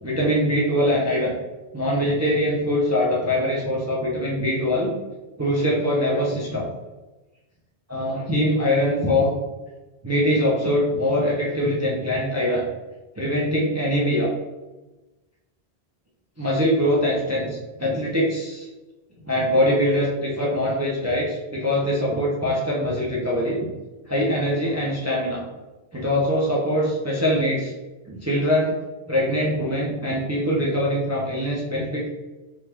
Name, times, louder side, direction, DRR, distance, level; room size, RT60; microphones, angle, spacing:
voice 1, 0.0-1.3 1.7-4.9 5.4-6.7 7.9-9.4 10.0-12.6 13.2-14.3 16.4-18.7 19.2-23.7 24.1-25.4 25.9-27.7 28.1-28.8 29.1-32.1, equal, 25° right, -5 dB, 0.4 m, -23 dB
2.8 x 2.3 x 3.3 m, 1.1 s
omnidirectional pair, 1.1 m